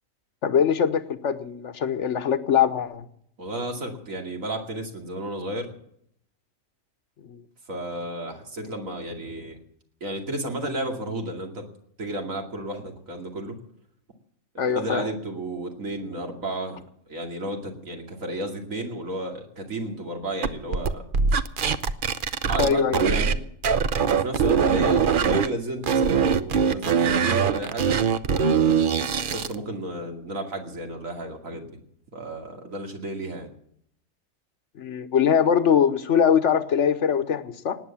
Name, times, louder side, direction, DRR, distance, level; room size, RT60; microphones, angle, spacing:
voice 1, 0.4-3.1 7.2-7.4 14.6-15.1 22.6-23.0 34.8-37.8, left 8 dB, 60° left, 11 dB, 1.3 m, -22 dB
voice 2, 3.4-5.7 7.7-9.6 10.0-11.6 12.0-13.6 14.7-16.8 17.1-21.0 22.4-23.4 24.1-29.0 29.3-31.7 32.1-33.5, right 1 dB, 80° right, 3 dB, 3.0 m, -32 dB
sound 1, 20.4-23.4 23.6-25.5 25.8-29.5, right 6 dB, 45° right, 0.8 m, -22 dB
18.5 x 9.6 x 7.2 m, 0.69 s
omnidirectional pair, 1.4 m